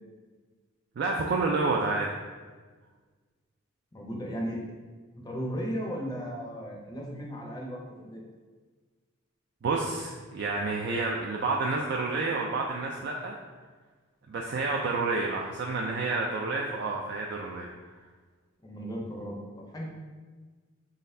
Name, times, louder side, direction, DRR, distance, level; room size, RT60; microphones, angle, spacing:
voice 1, 1.0-2.1 9.6-13.4 14.3-17.7, right 3 dB, 55° right, -1 dB, 0.3 m, -29 dB
voice 2, 3.9-4.6 5.2-8.2 18.6-19.4 19.7-19.9, equal, 20° left, -1 dB, 0.5 m, -35 dB
4.0 x 3.9 x 2.6 m, 1.4 s
head